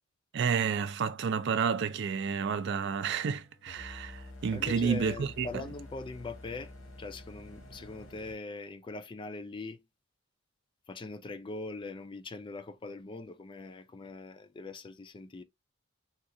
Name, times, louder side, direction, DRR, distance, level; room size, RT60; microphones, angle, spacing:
voice 1, 0.3-5.7, right 6 dB, 60° right, 0.4 m, -30 dB
sound 1, 2.0-8.3, left 1 dB, 90° left, 1.3 m, -49 dB
voice 2, 4.5-6.7 7.0-9.8 10.9-15.4, left 3 dB, 25° left, 0.3 m, -42 dB
3.7 x 2.3 x 2.6 m
head